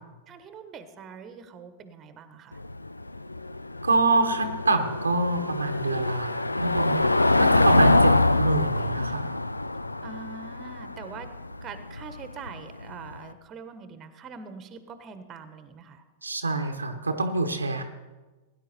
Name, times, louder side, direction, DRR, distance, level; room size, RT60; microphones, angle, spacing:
voice 1, 0.3-2.6 10.0-11.3 11.6-16.0, right 5 dB, 25° right, 10 dB, 1.1 m, -43 dB
Car passing by / Engine, 2.5-13.2, left 2 dB, 85° left, 0.4 m, -25 dB
voice 2, 3.8-7.0 7.4-9.3 16.2-17.8, right 3 dB, 80° right, 7 dB, 1.0 m, -26 dB
17.5 x 10.0 x 4.2 m, 1.2 s
figure-of-eight pair, 95°, 0 cm